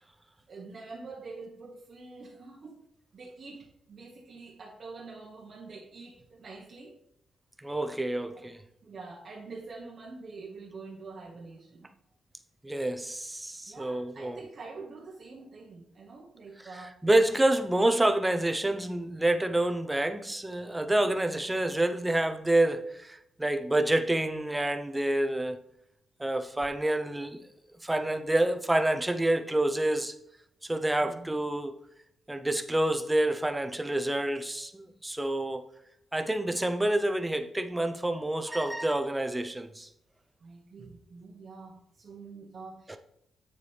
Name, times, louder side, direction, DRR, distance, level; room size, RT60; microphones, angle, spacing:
voice 1, 0.5-2.9 3.1-7.0 8.3-8.5 8.8-11.9 13.7-17.0 20.9-21.2 31.0-31.3 40.4-43.0, right 3 dB, 40° right, 0.9 m, -46 dB
voice 2, 7.6-8.6 12.6-14.4 17.0-25.6 26.2-27.4 27.8-30.1 30.6-31.8 32.3-35.6 36.1-39.9 42.9-43.0, right 1 dB, 10° right, 0.5 m, -28 dB
8.6 x 6.9 x 3.2 m
wide cardioid pair, 160°, 0 cm